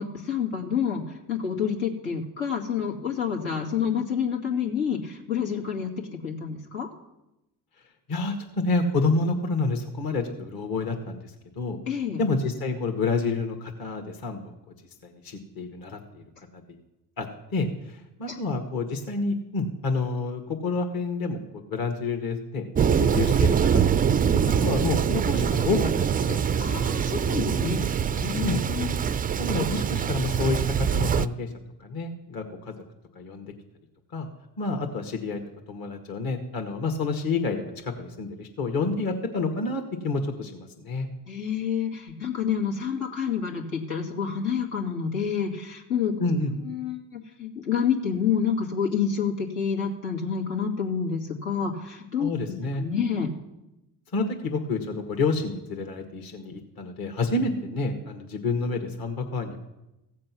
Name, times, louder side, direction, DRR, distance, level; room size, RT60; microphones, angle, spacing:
voice 1, 0.0-6.9 11.9-12.2 18.3-18.4 26.6-28.9 41.3-46.1 46.6-53.3, left 7 dB, 75° left, -1 dB, 2.5 m, -28 dB
voice 2, 8.1-11.8 12.2-14.5 15.0-16.2 17.2-17.3 17.5-21.4 21.7-22.7 23.0-24.1 24.6-26.4 28.4-28.6 29.4-31.5 31.8-32.7 33.2-33.5 34.1-34.3 34.6-35.4 35.7-41.1 46.2-46.5 52.2-52.8 54.1-59.6, left 3 dB, 45° left, 3 dB, 1.9 m, -29 dB
Thunder, 22.7-31.3, right 7 dB, 20° right, 0.3 m, -24 dB
15.5 x 7.6 x 6.1 m, 0.93 s
hypercardioid pair, 60°, 49 cm